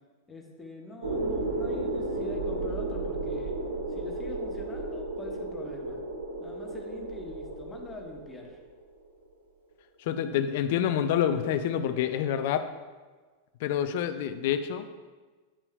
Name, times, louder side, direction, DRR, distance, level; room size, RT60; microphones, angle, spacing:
voice 1, 0.3-3.6 3.9-6.0 6.4-8.6, left 2 dB, 15° left, 1 dB, 1.2 m, -44 dB
sound 1, 1.0-8.8, right 2 dB, 70° right, 1.1 m, -33 dB
voice 2, 10.0-12.7 13.6-14.9, left 9 dB, 50° left, 10 dB, 0.4 m, -27 dB
10.0 x 6.8 x 2.2 m, 1.3 s
figure-of-eight pair, 90°, 0 cm